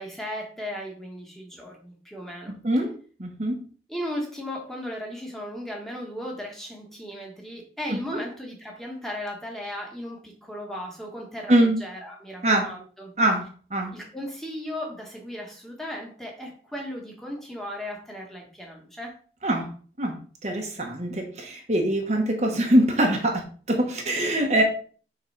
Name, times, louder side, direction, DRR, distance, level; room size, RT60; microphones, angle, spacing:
voice 1, 0.0-2.6 3.9-13.1 13.9-19.2, equal, ahead, -1 dB, 1.7 m, -36 dB
voice 2, 3.2-3.6 7.9-8.2 11.5-11.8 12.4-12.7 13.2-13.5 13.7-13.9 19.4-19.7 20.0-23.4 23.7-24.6, right 1 dB, 40° right, 2 dB, 1.2 m, -23 dB
6.8 x 3.9 x 5.7 m, 0.43 s
head